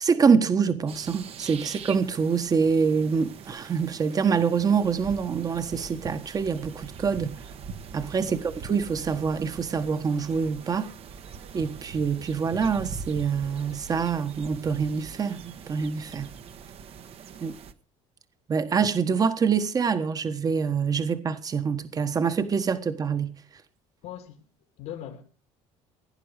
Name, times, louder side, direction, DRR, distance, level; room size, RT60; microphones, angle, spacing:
voice 1, 0.0-7.4 7.9-10.9 11.5-16.3 17.4-17.5 18.5-23.4, right 6 dB, 30° right, 1.4 m, -25 dB
sound 1, 0.9-17.7, right 6 dB, 50° right, 1.4 m, -42 dB
voice 2, 24.0-24.4 24.8-25.2, left 10 dB, 75° left, 2.4 m, -40 dB
17.0 x 10.0 x 6.5 m
cardioid pair, 125°, 13 cm